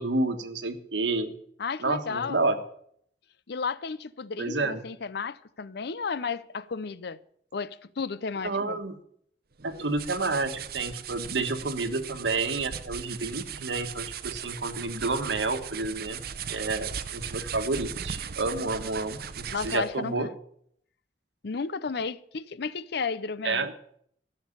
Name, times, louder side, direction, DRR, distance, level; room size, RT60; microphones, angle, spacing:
voice 1, 0.0-1.3 1.8-2.6 4.4-4.8 8.4-8.9 9.6-16.2 16.5-20.3 23.4-23.7, right 3 dB, 85° right, 1.5 m, -30 dB
voice 2, 1.6-2.4 3.5-7.2 7.5-8.8 19.5-20.3 21.4-23.7, left 5 dB, 65° left, 0.6 m, -33 dB
sound 1, 9.6-20.0, right 7 dB, 60° right, 0.7 m, -38 dB
13.5 x 6.6 x 9.9 m
head